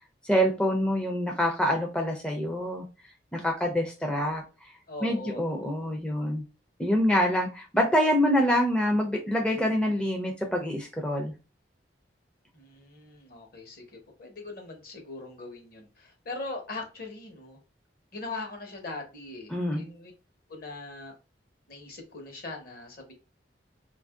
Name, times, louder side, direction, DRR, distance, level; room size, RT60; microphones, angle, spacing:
voice 1, 0.2-2.9 3.3-4.4 5.0-6.4 6.8-11.3 19.5-19.8, equal, 5° left, 1 dB, 0.4 m, -26 dB
voice 2, 4.9-6.0 12.5-17.6 18.1-20.1 20.5-21.2 21.7-23.1, left 3 dB, 55° left, 2 dB, 1.1 m, -41 dB
2.8 x 2.6 x 3.5 m, 0.32 s
head